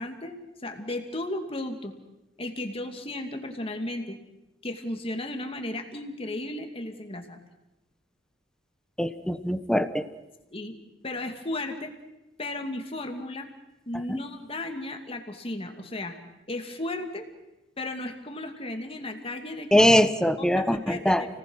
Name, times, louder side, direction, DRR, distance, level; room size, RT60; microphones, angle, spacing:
voice 1, 0.0-1.9 2.4-4.2 4.6-7.4 10.5-10.8 11.0-11.9 12.4-13.5 13.9-16.2 16.5-17.3 17.8-19.8 20.4-21.3, left 1 dB, 30° left, 5 dB, 2.4 m, -35 dB
voice 2, 9.0-10.0 14.1-14.2 19.7-21.3, equal, 5° left, 11 dB, 0.9 m, -22 dB
29.5 x 19.0 x 6.4 m, 0.97 s
head